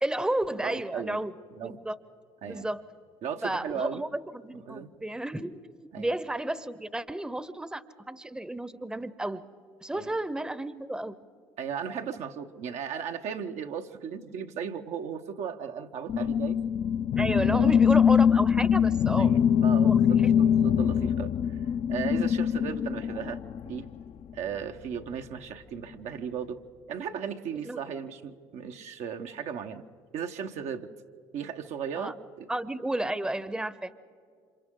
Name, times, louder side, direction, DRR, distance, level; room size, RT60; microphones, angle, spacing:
voice 1, 0.0-1.3 1.6-2.0 2.5-2.8 3.4-5.6 6.0-9.4 9.8-11.2 17.2-19.3 19.8-20.0 27.6-27.8 31.9-32.1 32.5-33.9, right 1 dB, 5° right, 15 dB, 0.8 m, -32 dB
voice 2, 0.6-1.2 1.5-1.8 2.4-2.7 3.2-4.0 4.7-4.9 5.9-6.1 9.9-10.1 11.6-16.6 17.5-17.9 19.2-21.3 21.9-23.9 24.3-26.6 26.9-29.8 30.1-30.9 31.3-32.5, right 7 dB, 65° right, 5 dB, 1.0 m, -36 dB
sound 1, 16.1-23.9, left 8 dB, 50° left, 0.6 m, -23 dB
29.5 x 26.5 x 3.8 m, 2.2 s
hypercardioid pair, 65°, 12 cm